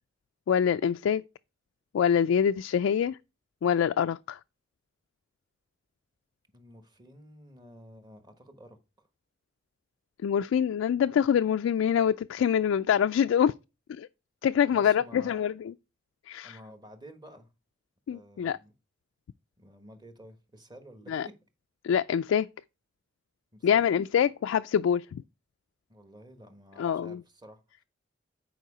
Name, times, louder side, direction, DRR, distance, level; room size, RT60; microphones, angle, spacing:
voice 1, 0.5-1.2 1.9-3.2 3.6-4.4 10.2-13.5 13.9-14.1 14.4-15.7 16.3-16.6 18.1-18.6 21.1-21.3 21.8-22.5 23.6-25.2 26.8-27.2, left 8 dB, 90° left, 0.3 m, -25 dB
voice 2, 6.5-9.1 14.7-15.4 16.4-17.5 18.1-18.7 19.6-21.1 23.5-23.8 24.2-24.3 25.9-27.8, equal, 20° right, 1.2 m, -51 dB
9.2 x 4.7 x 4.9 m
head